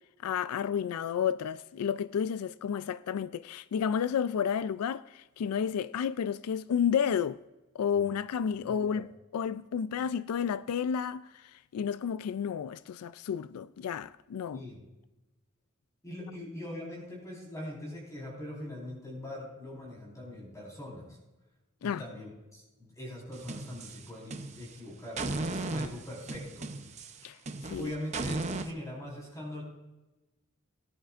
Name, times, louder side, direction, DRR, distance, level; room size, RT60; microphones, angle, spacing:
voice 1, 0.2-7.4 7.7-14.6 21.8-22.0 27.2-27.9, left 7 dB, 85° left, 0.3 m, -31 dB
voice 2, 8.6-9.1 14.5-14.8 16.0-21.2 21.8-26.7 27.7-29.6, left 1 dB, 15° left, 4.2 m, -42 dB
sound 1, 23.3-24.7 25.2-28.7, right 2 dB, 30° right, 0.7 m, -36 dB
18.5 x 10.5 x 2.5 m
head